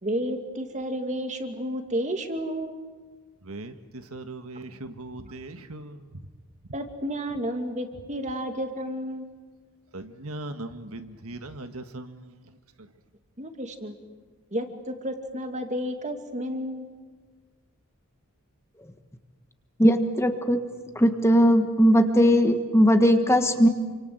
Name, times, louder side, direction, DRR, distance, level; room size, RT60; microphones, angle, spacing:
voice 1, 0.0-2.8 6.7-9.3 13.4-13.9 14.5-16.9, equal, 35° right, 6 dB, 2.3 m, -31 dB
voice 2, 3.5-6.0 9.9-12.2, right 2 dB, 75° right, 8 dB, 1.6 m, -39 dB
voice 3, 19.8-20.6 20.9-23.7, equal, 10° left, 6 dB, 1.4 m, -19 dB
28.0 x 25.5 x 7.8 m, 1.4 s
head